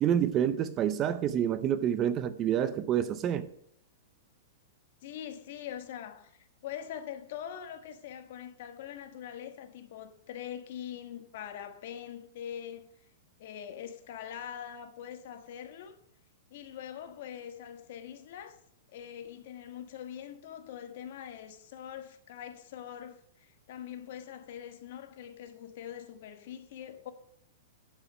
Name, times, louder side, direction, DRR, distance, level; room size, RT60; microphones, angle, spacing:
voice 1, 0.0-3.5, right 10 dB, 25° right, 0.5 m, -28 dB
voice 2, 5.0-12.9 13.4-16.0 16.5-18.6 18.9-27.1, left 9 dB, 55° left, 1.3 m, -43 dB
11.5 x 5.4 x 6.2 m
hypercardioid pair, 160°, 0 cm